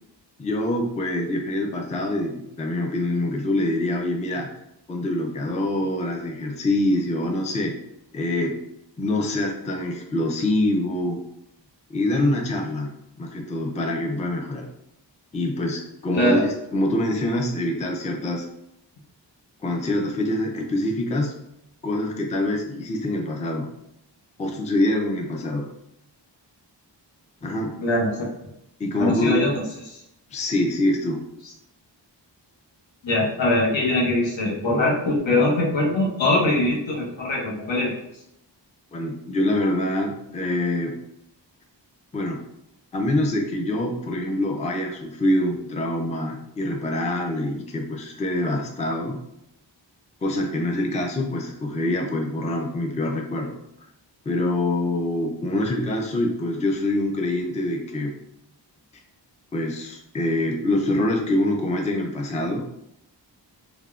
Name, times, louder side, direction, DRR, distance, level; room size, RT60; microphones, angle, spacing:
voice 1, 0.4-4.5 4.9-7.7 8.1-8.6 9.0-11.2 11.9-12.9 13.2-14.7 15.3-18.5 19.6-21.3 21.8-23.7 24.4-25.7 27.4-27.7 28.8-29.4 30.3-31.2 38.9-40.9 42.1-42.4 42.9-49.2 50.2-53.6 54.3-58.1 59.5-62.6, left 1 dB, 20° left, 2 dB, 0.3 m, -25 dB
voice 2, 27.8-28.3 29.0-29.5 29.9-30.0 33.0-37.9, left 2 dB, 85° left, -3 dB, 0.9 m, -22 dB
3.3 x 2.1 x 2.3 m, 0.81 s
wide cardioid pair, 75°, 44 cm